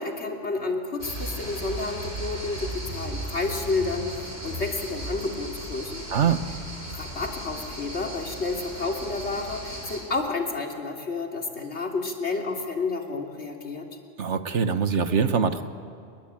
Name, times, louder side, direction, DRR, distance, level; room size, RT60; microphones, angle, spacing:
voice 1, 0.0-6.1 6.9-13.9, left 3 dB, 65° left, 1 dB, 3.2 m, -30 dB
sound 1, 1.0-10.0, right 1 dB, 55° right, 5.5 m, -36 dB
voice 2, 6.1-6.4 14.2-15.6, right 6 dB, 75° right, 9 dB, 1.6 m, -23 dB
29.5 x 22.5 x 8.8 m, 2.4 s
omnidirectional pair, 1.2 m